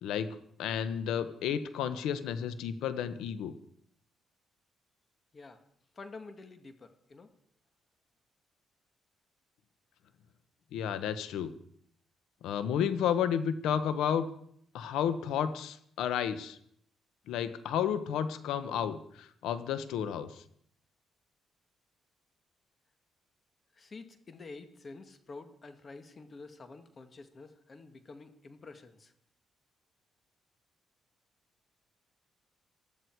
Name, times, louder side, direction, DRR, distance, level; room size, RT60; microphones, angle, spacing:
voice 1, 0.0-3.5 10.7-11.5 12.4-14.3 14.7-16.6 17.3-20.4, left 8 dB, 85° left, 12 dB, 1.1 m, -32 dB
voice 2, 5.9-7.3 23.7-29.1, left 3 dB, 35° left, 8 dB, 1.9 m, -49 dB
19.5 x 13.0 x 4.7 m, 0.68 s
cardioid pair, 90°, 0 cm